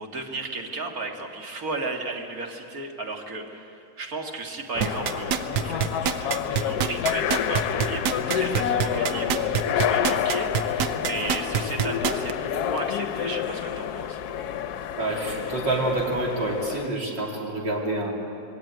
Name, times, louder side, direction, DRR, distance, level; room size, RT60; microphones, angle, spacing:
voice 1, 0.0-14.2, right 3 dB, 55° right, 2 dB, 2.3 m, -34 dB
sound 1, 4.7-16.9, left 9 dB, 65° left, 1.2 m, -28 dB
sound 2, 4.8-12.3 12.8-12.9, right 9 dB, 70° right, 1.3 m, -25 dB
voice 2, 14.9-18.1, right 2 dB, 90° right, -1 dB, 3.6 m, -27 dB
21.0 x 17.0 x 9.3 m, 2.7 s
omnidirectional pair, 1.9 m